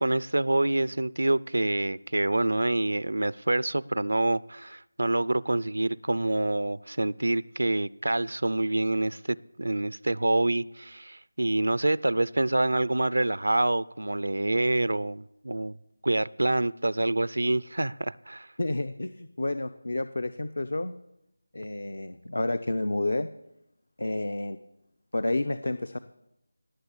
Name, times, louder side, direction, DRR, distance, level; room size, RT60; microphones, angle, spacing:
voice 1, 0.0-15.8 16.0-18.5, right 2 dB, 80° right, 19 dB, 0.4 m, -26 dB
voice 2, 18.6-20.9 21.5-23.3 24.0-24.6 25.1-26.0, left 2 dB, 65° left, 12 dB, 0.7 m, -30 dB
18.0 x 6.6 x 8.5 m, 0.85 s
figure-of-eight pair, 170°, 0 cm